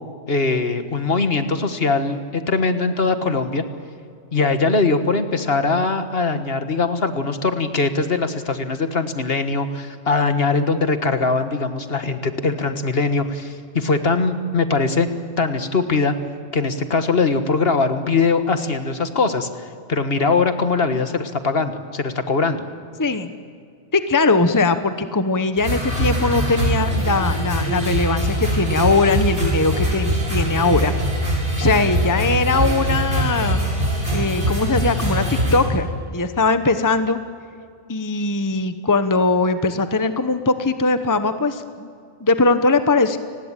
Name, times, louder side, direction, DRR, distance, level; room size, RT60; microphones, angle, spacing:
voice 1, 0.3-3.6 4.3-15.1 15.4-16.2 16.5-22.6, left 4 dB, 55° left, 9 dB, 1.7 m, -21 dB
voice 2, 23.0-23.3 23.9-30.9 31.6-33.6 34.1-35.9 36.1-37.2 37.9-41.9 42.2-43.2, left 3 dB, 20° left, 10 dB, 0.9 m, -20 dB
sound 1, 25.6-35.6, right 1 dB, 70° right, 7.7 m, -22 dB
29.5 x 19.5 x 9.0 m, 2.4 s
omnidirectional pair, 1.2 m